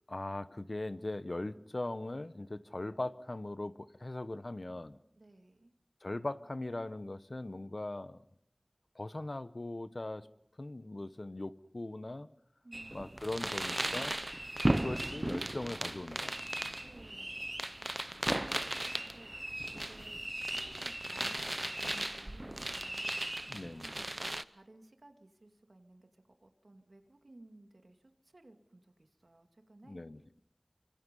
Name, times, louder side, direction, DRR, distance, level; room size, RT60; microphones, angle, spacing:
voice 1, 0.1-5.0 6.0-8.2 8.9-10.3 10.6-12.3 12.9-14.2 14.7-16.4 18.3-18.5 23.5-23.9 29.9-30.4, left 2 dB, 60° left, 14 dB, 1.0 m, -40 dB
voice 2, 5.2-5.7 12.6-13.0 16.8-17.5 17.8-18.4 18.8-19.3 19.7-23.3 23.8-30.1, right 2 dB, 75° right, 6 dB, 2.5 m, -58 dB
sound 1, 12.7-24.4, right 1 dB, 35° right, 0.8 m, -36 dB
28.5 x 25.0 x 5.4 m, 0.74 s
wide cardioid pair, 45°, 0 cm